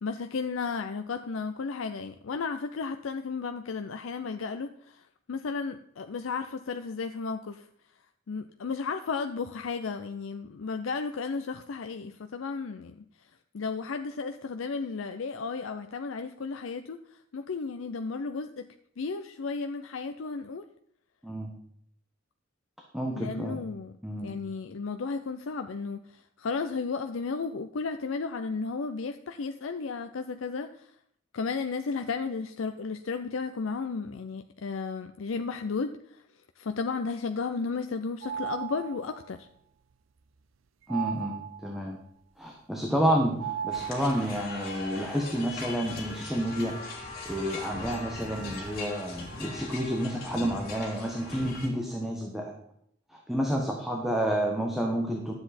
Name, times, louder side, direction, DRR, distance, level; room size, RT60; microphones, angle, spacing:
voice 1, 0.0-7.7 8.3-13.0 13.5-17.0 17.3-18.7 19.0-20.7 23.1-30.9 31.3-36.2 36.6-39.5, left 4 dB, 90° left, 8 dB, 0.5 m, -34 dB
voice 2, 22.9-23.7 24.0-24.4 40.9-42.0 42.4-46.7 47.2-52.5 53.1-55.3, equal, ahead, -1 dB, 1.2 m, -30 dB
sound 1, 38.2-39.2 40.9-41.9 43.4-44.5, right 10 dB, 90° right, 0.6 m, -36 dB
sound 2, 43.7-51.7, left 2 dB, 50° left, 3.1 m, -40 dB
12.0 x 7.9 x 4.2 m, 0.69 s
head